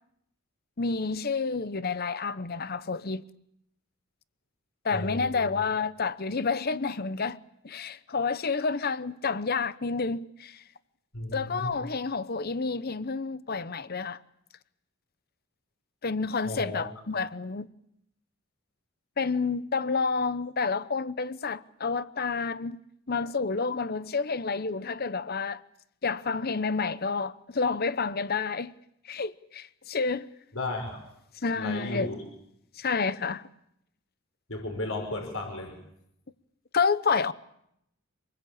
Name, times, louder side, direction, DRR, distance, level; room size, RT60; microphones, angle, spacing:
voice 1, 0.8-3.2 4.8-7.4 7.6-10.6 11.3-14.2 16.0-17.7 19.2-22.8 23.1-25.6 26.0-28.7 29.0-30.3 31.4-32.1 32.8-33.5 36.7-37.3, left 4 dB, 45° left, 0.9 m, -29 dB
voice 2, 4.9-5.6 11.1-11.8 16.4-16.8 30.5-31.0 31.6-32.2 34.5-35.8, left 2 dB, 70° left, 5.6 m, -34 dB
26.5 x 20.5 x 8.7 m
head